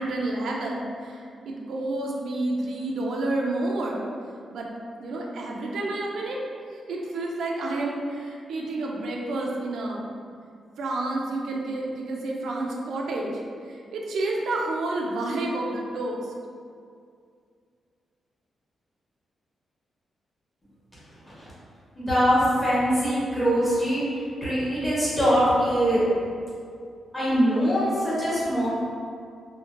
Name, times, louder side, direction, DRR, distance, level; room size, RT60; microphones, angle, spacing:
voice 1, 0.0-4.1 4.5-4.7 5.0-6.4 6.9-10.0 10.8-13.3 13.7-16.3, right 2 dB, 85° right, -1 dB, 0.3 m, -29 dB
voice 2, 21.9-24.0 24.4-26.0 27.1-28.7, equal, 20° left, -10 dB, 1.1 m, -22 dB
2.8 x 2.0 x 2.4 m, 2.3 s
cardioid pair, 120°, 0 cm